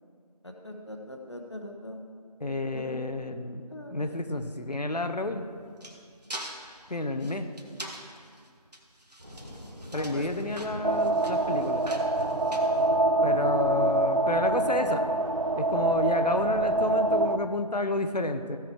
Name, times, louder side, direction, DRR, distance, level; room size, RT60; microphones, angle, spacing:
voice 1, 0.4-2.0 2.7-3.0 3.7-4.1 9.9-10.3, left 1 dB, 45° left, 3 dB, 1.1 m, -40 dB
voice 2, 2.4-3.6 3.9-5.4 6.9-7.5 9.9-11.8 13.2-15.0 15.5-18.6, left 2 dB, 80° left, 8 dB, 1.0 m, -30 dB
sound 1, 5.2-13.4, right 1 dB, 80° right, 1.6 m, -44 dB
sound 2, 9.2-17.3, left 1 dB, 15° right, 1.2 m, -43 dB
sound 3, 10.8-17.4, right 2 dB, 55° right, 0.5 m, -25 dB
15.5 x 6.2 x 4.7 m, 2.2 s
figure-of-eight pair, 170°, 21 cm